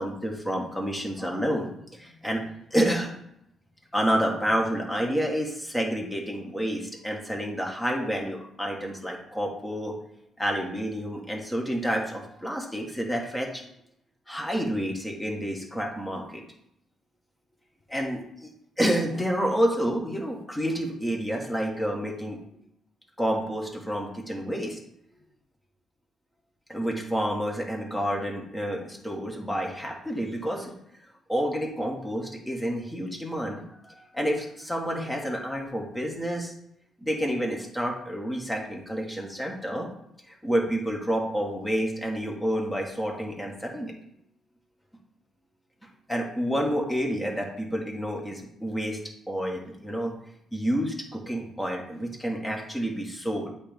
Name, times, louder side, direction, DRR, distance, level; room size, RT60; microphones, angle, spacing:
voice 1, 0.0-2.4 2.7-3.1 3.9-9.9 10.4-13.6 14.3-16.4 17.9-18.5 18.8-22.4 23.2-24.8 26.7-30.7 31.3-36.5 37.0-39.9 40.3-43.9 46.1-49.0 49.3-50.1 50.5-53.5, equal, 10° left, 0 dB, 1.6 m, -29 dB
8.1 x 3.1 x 5.2 m, 0.76 s
cardioid pair, 90°, 0 cm